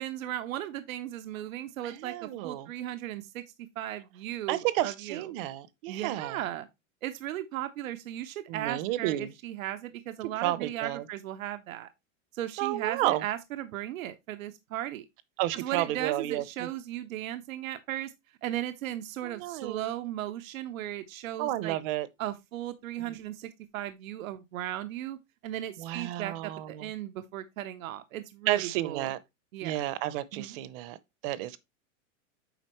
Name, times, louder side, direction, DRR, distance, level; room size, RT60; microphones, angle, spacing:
voice 1, 0.0-3.4 3.8-5.2 5.9-6.7 7.0-11.9 12.3-15.0 15.5-18.1 18.4-21.8 22.2-25.2 25.4-29.1 29.5-29.8 30.3-30.6, right 13 dB, 85° right, 0.8 m, -36 dB
voice 2, 1.8-2.7 4.5-6.4 8.5-9.3 10.2-11.0 12.6-13.2 15.4-16.7 19.2-19.9 21.4-22.1 23.0-23.2 25.8-26.9 28.5-29.2 29.6-31.0 31.2-31.6, right 14 dB, 45° right, 0.7 m, -31 dB
8.0 x 5.2 x 3.0 m
supercardioid pair, 150°, 40 cm